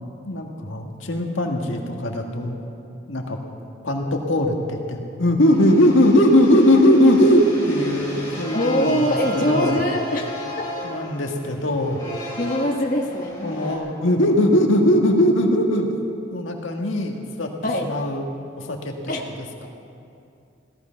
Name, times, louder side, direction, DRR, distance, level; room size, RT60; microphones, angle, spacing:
voice 1, 0.3-2.6 3.1-3.4 3.8-9.8 10.8-12.0 13.4-15.9 16.3-17.5 17.8-18.3 18.6-18.9 19.6-19.7, left 1 dB, 85° left, 2 dB, 1.7 m, -19 dB
sound 1, 5.5-13.8, equal, 15° left, 4.1 m, -34 dB
voice 2, 8.5-10.7 12.4-13.6 17.6-17.9 19.1-19.2, left 1 dB, 45° left, 1 dB, 1.2 m, -23 dB
16.5 x 14.5 x 5.8 m, 2.6 s
head